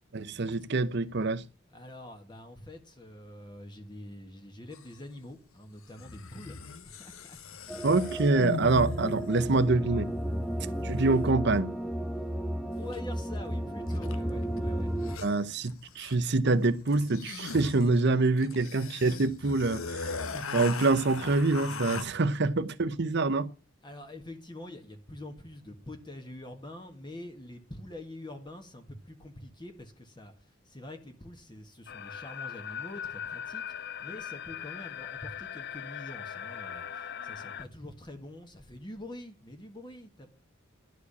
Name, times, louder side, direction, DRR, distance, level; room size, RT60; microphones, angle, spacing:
voice 1, 0.1-1.4 7.8-10.1 10.8-11.7 15.2-23.5, right 3 dB, 55° right, 0.8 m, -26 dB
voice 2, 1.7-8.3 12.8-15.0 23.8-40.3, left 1 dB, 20° left, 1.6 m, -46 dB
sound 1, 4.7-4.8 6.0-9.5 12.9-13.0 13.9-14.3 14.6-14.7 14.9-16.3 16.9-22.0, left 4 dB, 90° left, 1.1 m, -39 dB
sound 2, 7.7-15.2, right 1 dB, ahead, 0.8 m, -33 dB
sound 3, 31.9-37.6, left 8 dB, 50° left, 0.5 m, -40 dB
12.0 x 4.8 x 8.3 m
head